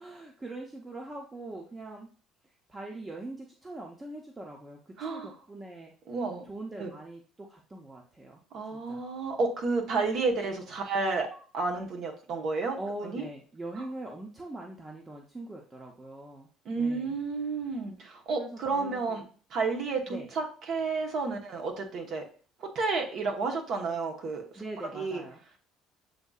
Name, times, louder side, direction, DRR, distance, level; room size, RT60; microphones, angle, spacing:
voice 1, 0.0-2.1 2.7-5.9 6.4-8.4 8.7-9.0 12.8-17.2 18.4-19.3 20.1-20.3 24.5-25.4, right 2 dB, 20° right, 1 dB, 0.7 m, -42 dB
voice 2, 5.0-5.3 6.1-6.4 6.8-6.9 8.5-12.8 13.0-13.2 13.8-13.9 16.6-19.2 19.5-22.2 22.6-24.6 24.9-25.2, right 4 dB, 60° right, 2 dB, 1.1 m, -31 dB
7.7 x 2.7 x 2.4 m, 0.41 s
supercardioid pair, 95°, 0 cm